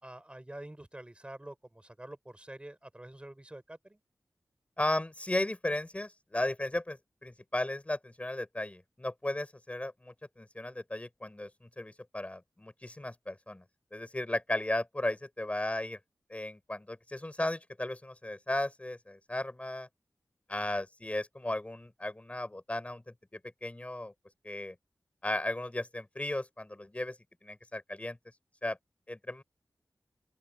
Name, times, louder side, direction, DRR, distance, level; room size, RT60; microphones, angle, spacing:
voice 1, 0.0-4.0, right 1 dB, 15° right, 3.6 m, -47 dB
voice 2, 4.8-13.6 13.9-16.0 16.3-19.9 20.5-23.0 23.3-24.1 24.4-24.7 25.2-27.2 27.4-28.2 28.6-28.8 29.1-29.4, left 1 dB, 20° left, 4.6 m, -35 dB
open air
wide cardioid pair, 105°, 7 cm